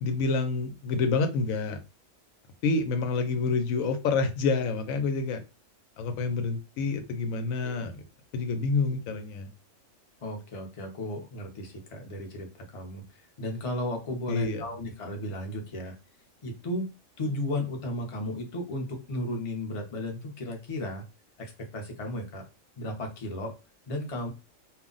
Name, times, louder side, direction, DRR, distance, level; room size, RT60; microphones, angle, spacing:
voice 1, 0.0-1.8 2.6-5.4 6.0-8.0 8.3-9.5 14.3-14.6, left 4 dB, 85° left, 8 dB, 1.0 m, -28 dB
voice 2, 10.2-16.0 16.4-21.0 21.4-22.5 22.8-23.6 23.9-24.3, left 1 dB, 40° left, 2 dB, 0.5 m, -35 dB
2.4 x 2.0 x 3.7 m, 0.28 s
omnidirectional pair, 1.4 m